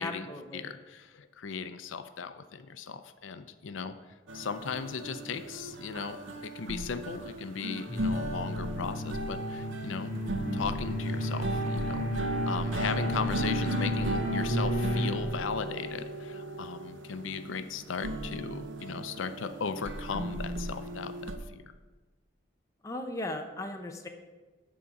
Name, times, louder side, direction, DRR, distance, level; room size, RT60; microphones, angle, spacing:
voice 1, 0.0-0.6 22.8-24.1, left 1 dB, 15° left, 3 dB, 0.7 m, -37 dB
voice 2, 0.5-4.0 4.3-10.1 10.5-21.7, left 5 dB, 80° left, 10 dB, 0.5 m, -37 dB
sound 1, 4.3-21.4, right 1 dB, 75° right, 0.8 m, -36 dB
sound 2, 7.8-15.2, equal, 30° right, 2.0 m, -33 dB
10.5 x 3.7 x 7.1 m, 1.3 s
head